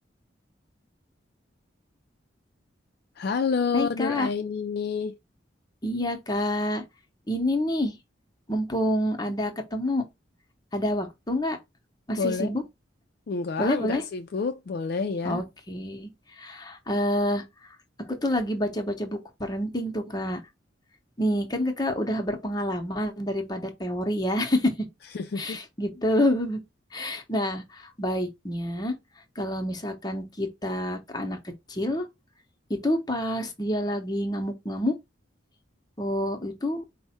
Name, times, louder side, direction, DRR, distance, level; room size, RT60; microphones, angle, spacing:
voice 1, 3.2-5.1 12.2-12.5 13.3-15.4 25.1-25.6, left 5 dB, 55° left, 0.4 m, -28 dB
voice 2, 3.7-4.3 5.8-6.8 7.3-8.0 8.5-10.0 10.7-11.6 12.1-12.6 13.6-14.0 15.2-20.4 21.2-24.9 25.4-26.6 26.9-28.9 29.4-31.4 31.7-32.1 32.7-34.9 36.0-36.8, left 1 dB, 20° left, 0.7 m, -28 dB
4.6 x 2.1 x 4.2 m
head